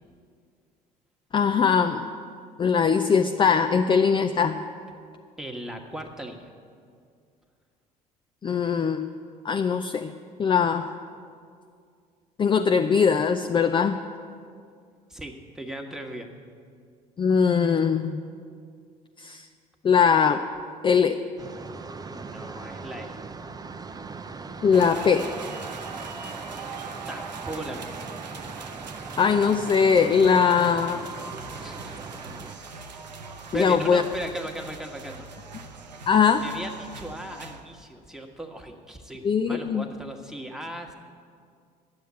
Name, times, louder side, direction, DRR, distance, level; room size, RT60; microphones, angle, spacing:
voice 1, 1.3-2.1 2.6-4.6 8.4-9.1 9.4-10.1 10.4-10.9 12.4-14.0 17.2-18.2 19.2-19.4 19.8-20.4 20.8-21.2 24.6-25.3 29.2-31.0 33.5-34.0 36.1-36.5 39.2-39.8, left 6 dB, 25° left, 6 dB, 0.5 m, -21 dB
voice 2, 5.4-6.5 15.1-16.3 22.0-23.2 27.1-28.0 31.6-32.0 33.5-35.3 36.4-40.9, right 1 dB, ahead, 3 dB, 1.4 m, -37 dB
sound 1, 21.4-32.6, right 4 dB, 20° right, 0.6 m, -40 dB
sound 2, 24.7-37.6, right 4 dB, 85° right, 0.7 m, -40 dB
10.5 x 7.8 x 9.4 m, 2.3 s
figure-of-eight pair, 55°, 21 cm